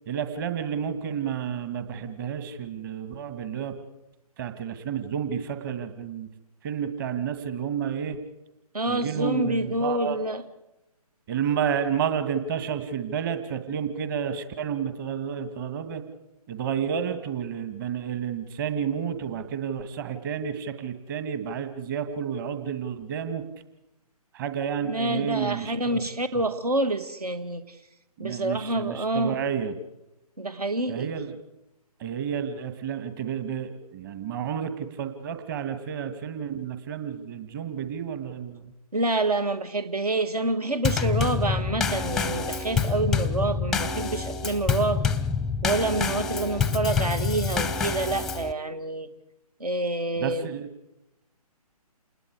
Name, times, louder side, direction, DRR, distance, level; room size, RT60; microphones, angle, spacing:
voice 1, 0.1-3.7 4.4-6.3 6.6-8.2 8.9-10.2 11.3-16.0 16.5-23.4 24.3-26.0 28.2-29.8 30.9-31.3 32.0-38.7 50.2-50.7, right 8 dB, 35° right, 9 dB, 2.3 m, -30 dB
voice 2, 8.7-10.4 24.8-27.8 28.2-29.4 30.4-31.1 38.9-45.1 45.6-49.1 49.6-50.5, right 2 dB, 75° right, 12 dB, 2.1 m, -27 dB
Drum kit / Snare drum / Bass drum, 40.8-48.5, left 5 dB, ahead, 0.7 m, -27 dB
28.5 x 20.5 x 4.9 m, 0.90 s
figure-of-eight pair, 140°, 20 cm